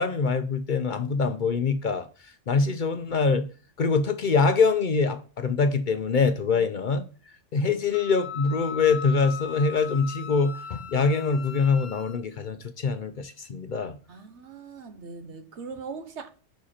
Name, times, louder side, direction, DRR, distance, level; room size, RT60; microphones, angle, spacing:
voice 1, 0.0-2.1 2.5-3.4 3.8-7.0 7.5-14.0, left 4 dB, 50° left, 0.7 m, -24 dB
Wind instrument woodwind instrument, 7.9-12.2, left 8 dB, 90° left, 1.2 m, -39 dB
voice 2, 14.1-16.3, right 5 dB, 70° right, 1.2 m, -40 dB
7.5 x 5.7 x 4.3 m
omnidirectional pair, 1.3 m